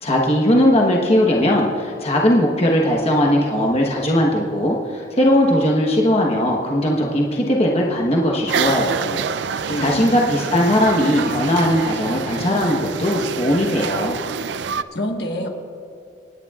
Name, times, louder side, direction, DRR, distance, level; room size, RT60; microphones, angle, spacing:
voice 1, 0.0-9.2 9.6-14.2, left 1 dB, 35° left, -1 dB, 1.1 m, -19 dB
sound 1, 8.5-14.8, right 6 dB, 70° right, 0.4 m, -27 dB
voice 2, 9.7-10.2 14.9-15.5, left 1 dB, 60° left, 2 dB, 1.4 m, -26 dB
29.0 x 9.9 x 2.4 m, 2.6 s
head